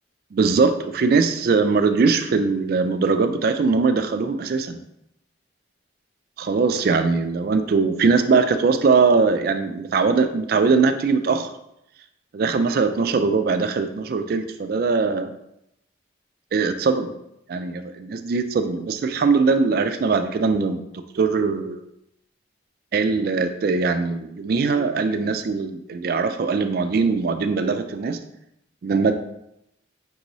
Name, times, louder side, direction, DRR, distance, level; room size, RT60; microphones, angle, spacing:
voice 1, 0.3-4.8 6.4-11.5 12.3-15.3 16.5-17.1 17.5-21.8 22.9-28.2 28.8-29.2, right 4 dB, 50° right, 9 dB, 0.3 m, -21 dB
5.3 x 3.0 x 2.6 m, 0.81 s
head